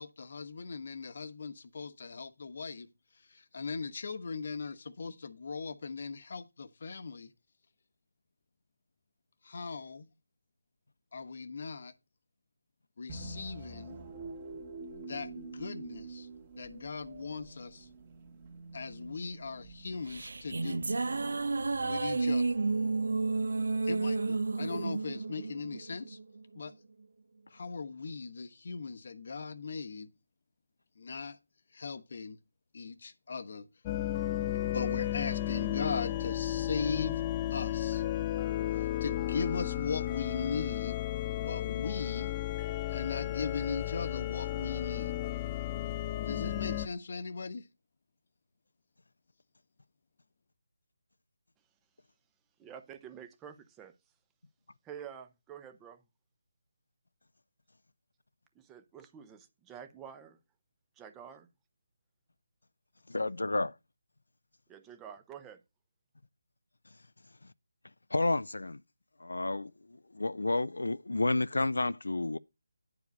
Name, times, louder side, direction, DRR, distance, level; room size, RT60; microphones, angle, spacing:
voice 1, 0.0-2.9 3.3-7.3 9.4-10.1 11.1-11.9 13.0-14.0 15.1-16.3 16.6-17.9 18.7-20.8 21.8-22.6 23.8-26.2 26.5-26.7 27.5-30.1 31.0-31.4 31.7-32.4 32.7-33.7 34.7-37.2 37.5-38.0 38.7-41.0 41.4-42.3 42.9-45.1 46.3-47.7, left 4 dB, 50° left, 1.0 m, -39 dB
sound 1, 13.1-21.8, right 3 dB, 30° right, 1.9 m, -47 dB
sound 2, 19.9-26.4, right 3 dB, 70° right, 0.9 m, -31 dB
sound 3, 33.9-46.9, left 13 dB, 20° left, 0.5 m, -33 dB
voice 2, 52.6-53.9 54.8-56.0 58.5-60.4 61.0-61.5 64.7-65.6, right 8 dB, 10° right, 0.7 m, -48 dB
voice 3, 63.1-63.7 68.1-68.8 69.2-69.7 70.1-72.4, left 2 dB, 80° left, 0.4 m, -30 dB
10.5 x 4.9 x 5.3 m
figure-of-eight pair, 160°, 0 cm